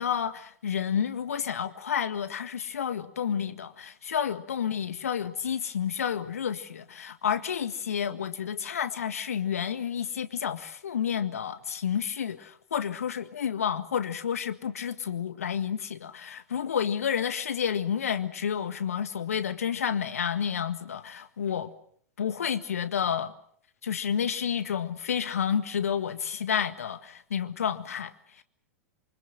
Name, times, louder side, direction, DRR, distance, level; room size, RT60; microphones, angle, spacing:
voice 1, 0.0-21.7 22.2-23.3 23.8-28.1 28.4-28.5, left 8 dB, 70° left, 1.7 m, -30 dB
27.0 x 25.0 x 6.4 m
figure-of-eight pair, 95°, 8 cm